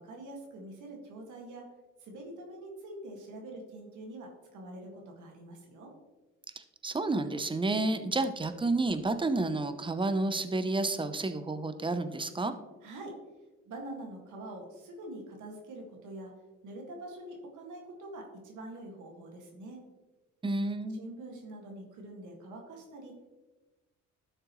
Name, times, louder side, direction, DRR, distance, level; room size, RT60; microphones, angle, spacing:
voice 1, 0.0-1.7 2.0-5.9 12.8-13.2 13.7-16.3 16.6-19.8 20.9-23.3, right 1 dB, 80° right, 1 dB, 1.9 m, -45 dB
voice 2, 6.6-12.5 20.4-21.0, right 2 dB, 15° right, 10 dB, 0.7 m, -30 dB
11.5 x 6.6 x 3.1 m, 1.2 s
cardioid pair, 90°, 30 cm